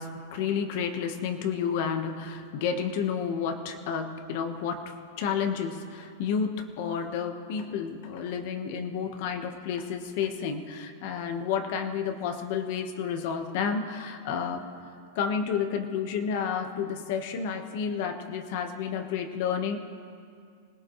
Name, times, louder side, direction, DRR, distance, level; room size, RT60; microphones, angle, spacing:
voice 1, 0.0-14.7 15.1-19.8, left 7 dB, 40° left, 5 dB, 1.2 m, -31 dB
25.5 x 18.0 x 3.1 m, 2.3 s
supercardioid pair, 180°, 0 cm